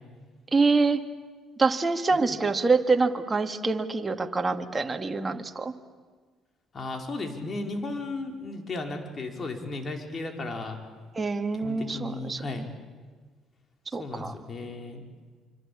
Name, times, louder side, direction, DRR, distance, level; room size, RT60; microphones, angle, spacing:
voice 1, 0.5-1.0 1.6-5.7 11.1-12.7 13.9-14.3, right 4 dB, 25° right, 5 dB, 2.1 m, -25 dB
voice 2, 6.7-10.8 11.6-12.6 14.0-15.0, left 2 dB, 45° left, 4 dB, 4.8 m, -35 dB
26.0 x 25.0 x 8.6 m, 1.4 s
hypercardioid pair, 60°, 0 cm